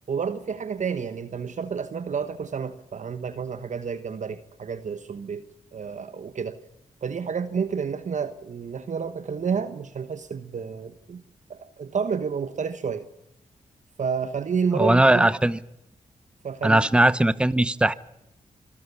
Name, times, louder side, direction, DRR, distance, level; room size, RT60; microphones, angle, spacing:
voice 1, 0.1-5.4 5.7-6.6 7.0-11.2 11.5-13.0 14.0-15.3 16.4-16.8, right 6 dB, 60° right, 11 dB, 1.2 m, -30 dB
voice 2, 14.7-15.6 16.6-17.9, right 1 dB, 5° right, 16 dB, 0.9 m, -19 dB
25.0 x 13.5 x 9.7 m, 0.80 s
supercardioid pair, 45°, 14 cm